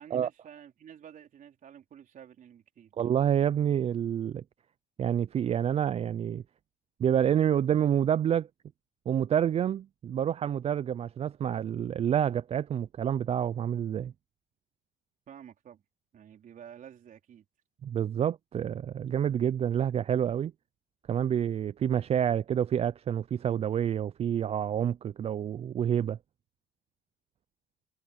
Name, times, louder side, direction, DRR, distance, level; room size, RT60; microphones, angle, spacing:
voice 1, 0.0-2.9 15.3-15.8 16.1-17.5, right 9 dB, 50° right, 4.2 m, -50 dB
voice 2, 3.0-4.4 5.0-6.4 7.0-8.5 9.1-14.1 17.8-20.5 21.1-26.2, right 9 dB, 35° right, 0.4 m, -28 dB
cardioid pair, 110°, 17 cm